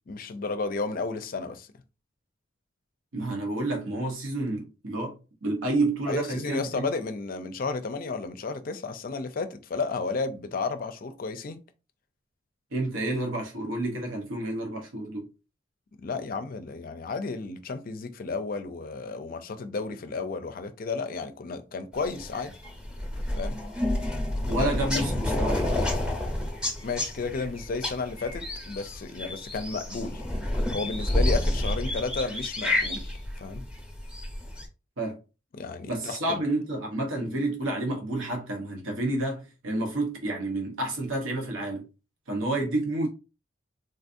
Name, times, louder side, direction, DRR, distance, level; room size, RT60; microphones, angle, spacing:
voice 1, 0.1-1.7 6.1-11.6 16.0-22.5 23.3-23.6 24.5-24.7 26.8-30.2 30.7-33.6 35.5-36.4, left 4 dB, 45° left, 0.4 m, -33 dB
voice 2, 3.1-6.9 12.7-15.3 24.5-25.8 35.0-35.2 35.9-41.9 42.3-43.1, right 2 dB, 85° right, 0.9 m, -29 dB
sound 1, 22.0-34.7, left 1 dB, 5° right, 0.8 m, -29 dB
3.8 x 2.6 x 2.5 m
head